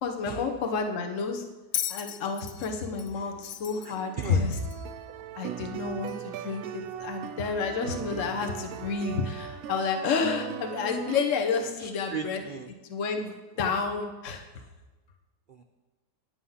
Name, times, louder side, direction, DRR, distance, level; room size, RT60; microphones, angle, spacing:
voice 1, 0.0-1.4 1.9-4.6 5.4-12.4 12.9-14.4, left 5 dB, 50° left, 4 dB, 1.3 m, -30 dB
Bell, 1.7-4.9 6.1-6.2, left 11 dB, 75° left, 1.1 m, -36 dB
sound 1, 3.3-11.2, right 10 dB, 70° right, 1.0 m, -39 dB
voice 2, 3.8-4.5 5.3-5.5 11.8-12.7 13.3-13.7 15.5-15.6, right 5 dB, 85° right, 5 dB, 0.4 m, -39 dB
9.5 x 8.9 x 5.7 m, 1.2 s
omnidirectional pair, 1.8 m